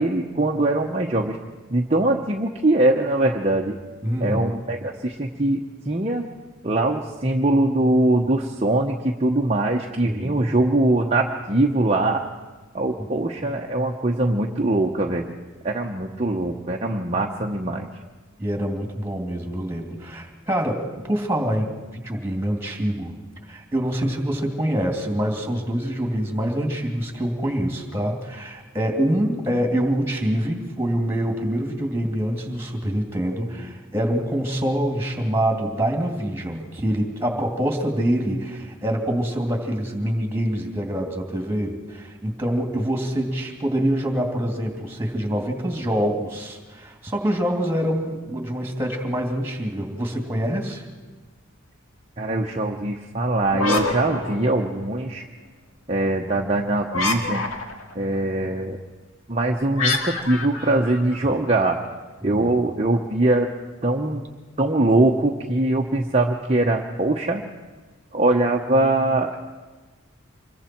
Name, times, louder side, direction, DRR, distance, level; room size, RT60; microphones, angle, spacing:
voice 1, 0.0-1.4 1.7-3.7 4.2-6.3 6.6-12.2 12.7-15.3 15.6-17.9 52.2-55.2 55.9-57.4 57.9-58.8 59.3-61.8 62.2-63.5 63.8-64.2 64.6-67.4 68.1-69.4, right 2 dB, 30° right, 0 dB, 1.0 m, -22 dB
voice 2, 4.0-4.5 10.0-10.4 18.4-23.1 23.5-50.8 62.2-62.6, equal, 10° right, 2 dB, 2.7 m, -25 dB
sound 1, 53.4-55.0 56.9-57.9 59.8-61.6, left 3 dB, 75° left, 2.2 m, -27 dB
26.0 x 22.0 x 4.5 m, 1.3 s
head